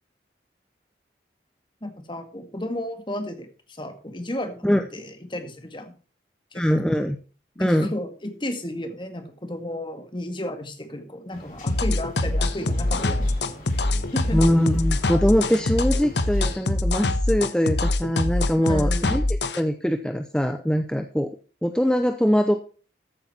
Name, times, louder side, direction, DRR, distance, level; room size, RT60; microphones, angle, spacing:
voice 1, 1.8-4.7 4.9-5.9 6.5-6.6 7.6-13.3 13.7-13.9 14.1-14.4 18.6-19.1, left 1 dB, 25° left, 7 dB, 2.0 m, -33 dB
voice 2, 6.5-7.2 7.6-7.9 14.3-21.3 21.6-22.7, equal, 5° left, 7 dB, 0.7 m, -22 dB
sound 1, 11.3-16.6, equal, 50° left, 5.5 m, -41 dB
sound 2, 11.7-19.6, left 2 dB, 85° left, 1.2 m, -23 dB
14.0 x 8.5 x 4.4 m, 0.38 s
head